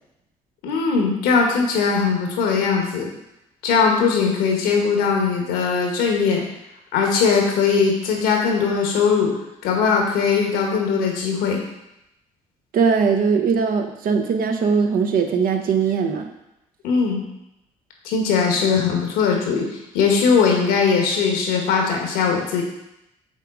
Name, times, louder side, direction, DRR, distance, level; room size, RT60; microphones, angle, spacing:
voice 1, 0.6-3.1 3.6-6.4 6.9-9.3 9.6-11.6 16.8-17.2 18.0-19.7 19.9-22.6, left 5 dB, 80° left, 1 dB, 1.2 m, -20 dB
voice 2, 12.7-16.3, right 5 dB, 65° right, 5 dB, 0.8 m, -20 dB
6.4 x 3.9 x 3.7 m, 0.87 s
supercardioid pair, 60°, 16 cm